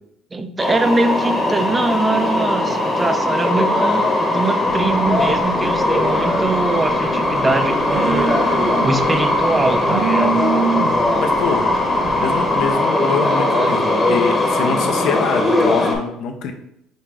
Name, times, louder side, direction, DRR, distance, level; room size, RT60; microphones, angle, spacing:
voice 1, 0.3-8.4 8.8-10.4, right 2 dB, 20° right, 9 dB, 0.4 m, -22 dB
sound 1, 0.6-16.0, left 1 dB, 15° left, 0.9 m, -19 dB
Telephone, 4.7-12.7, right 6 dB, 85° right, 0.7 m, -28 dB
voice 2, 11.1-11.7 12.2-16.5, left 6 dB, 65° left, 5 dB, 0.5 m, -24 dB
5.2 x 2.4 x 3.3 m, 0.79 s
supercardioid pair, 85°, 0 cm